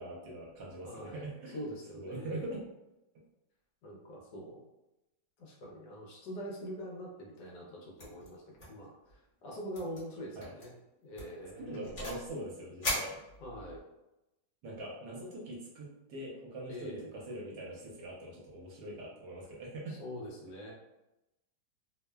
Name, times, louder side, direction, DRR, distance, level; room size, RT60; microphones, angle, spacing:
voice 1, 0.0-1.6 1.9-2.6 10.3-10.5 11.6-13.2 14.6-20.0, right 1 dB, 70° right, -3 dB, 1.2 m, -43 dB
voice 2, 0.8-1.3 1.5-2.5 3.8-4.6 5.4-10.7 11.0-12.0 13.4-13.8 16.7-17.1 19.9-20.7, equal, 70° left, -3 dB, 1.2 m, -44 dB
sound 1, 8.0-8.3 8.6-8.9 9.1-9.2 9.7-10.0 10.4-10.7 11.2-12.3 12.8-13.8, left 1 dB, 45° left, 1.1 m, -38 dB
3.1 x 2.0 x 2.2 m, 0.94 s
omnidirectional pair, 2.0 m